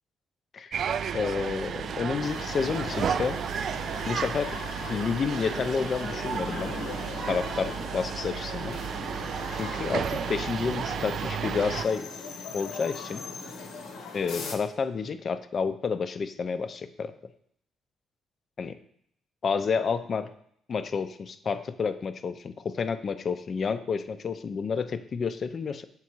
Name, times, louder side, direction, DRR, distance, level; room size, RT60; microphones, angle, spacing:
sound 1, 0.7-11.9, right 7 dB, 60° right, 0.3 m, -33 dB
voice 1, 1.1-3.4 4.0-6.7 7.3-8.8 9.5-12.1 12.5-13.2 14.1-17.1 18.6-18.8 19.4-20.3 20.7-25.8, left 5 dB, 45° left, 11 dB, 0.5 m, -30 dB
sound 2, 2.2-14.6, left 4 dB, 80° left, 0.9 m, -40 dB
7.1 x 3.8 x 4.5 m, 0.68 s
cardioid pair, 90°, 0 cm